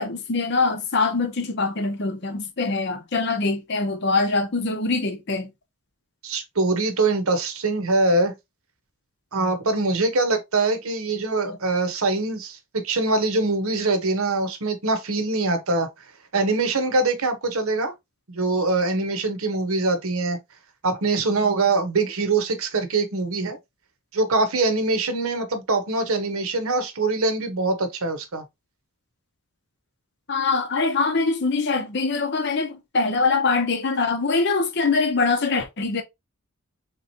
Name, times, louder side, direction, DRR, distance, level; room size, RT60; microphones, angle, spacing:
voice 1, 0.0-5.5 11.5-11.6 30.3-36.0, left 3 dB, 50° left, 0.7 m, -23 dB
voice 2, 6.2-8.3 9.3-15.9 16.3-17.9 18.3-20.4 20.8-23.6 24.1-28.4, right 3 dB, 70° right, 0.9 m, -23 dB
3.7 x 3.0 x 2.6 m
head